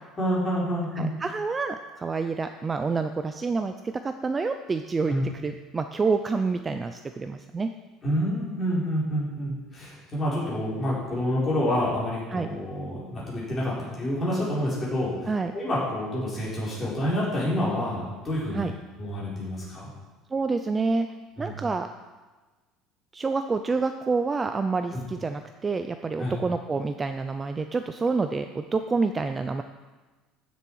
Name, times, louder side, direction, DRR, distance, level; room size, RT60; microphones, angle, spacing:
voice 1, 0.2-1.1 5.1-5.2 8.0-18.7 19.0-19.9 21.4-21.6 24.9-25.0 26.2-26.3, equal, 20° left, -7 dB, 4.0 m, -28 dB
voice 2, 1.0-7.7 12.3-12.5 15.3-15.5 18.5-18.7 20.3-21.1 21.4-21.9 23.1-29.6, right 4 dB, 15° right, 8 dB, 0.4 m, -28 dB
14.5 x 7.0 x 4.6 m, 1.2 s
cardioid pair, 165°, 0 cm